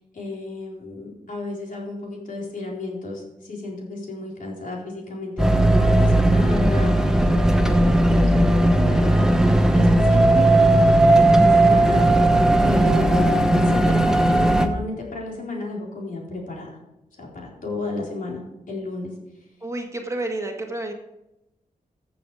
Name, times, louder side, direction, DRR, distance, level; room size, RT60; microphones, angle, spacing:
voice 1, 0.1-6.9 7.7-10.5 11.1-12.0 12.6-16.8 17.1-19.1, left 2 dB, 65° left, -2 dB, 4.2 m, -33 dB
sound 1, 5.4-14.7, right 1 dB, 5° right, 1.1 m, -17 dB
voice 2, 19.6-20.9, right 2 dB, 20° right, 2 dB, 1.7 m, -30 dB
14.5 x 7.1 x 4.9 m, 0.92 s
wide cardioid pair, 95°, 15 cm